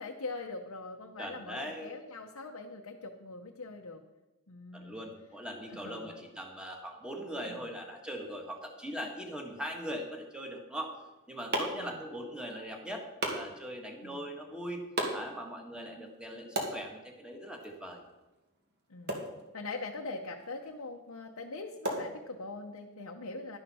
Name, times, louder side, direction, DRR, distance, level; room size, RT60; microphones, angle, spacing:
voice 1, 0.0-4.0 4.5-5.0 5.7-6.3 7.4-7.7 11.7-12.0 14.0-14.2 18.9-19.3 19.5-23.6, left 3 dB, 70° left, 1 dB, 0.9 m, -42 dB
voice 2, 1.2-1.9 4.7-10.9 11.3-14.8 15.1-18.0, equal, 5° right, 2 dB, 1.6 m, -41 dB
sound 1, 10.8-22.8, right 1 dB, 50° right, 2.1 m, -41 dB
11.5 x 11.0 x 4.3 m, 1.1 s
head